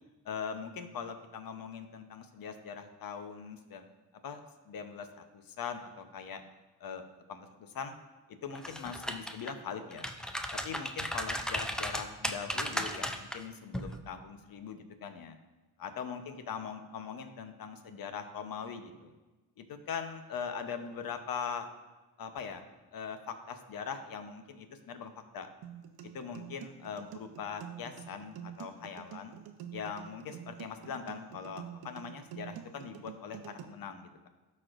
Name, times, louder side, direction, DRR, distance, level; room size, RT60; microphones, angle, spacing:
voice 1, 0.2-3.9 4.2-5.1 5.3-6.4 6.8-7.0 7.3-7.9 8.4-10.1 10.5-15.4 15.8-19.1 19.6-21.7 22.2-22.6 22.9-25.5 26.1-29.3 29.7-34.3, left 6 dB, 60° left, 8 dB, 0.9 m, -41 dB
sound 1, 8.5-9.5 9.9-13.4 13.7-13.9, equal, ahead, 0.5 m, -35 dB
sound 2, 25.6-33.6, right 9 dB, 70° right, 0.8 m, -47 dB
13.0 x 4.4 x 2.5 m, 1.2 s
cardioid pair, 75°, 39 cm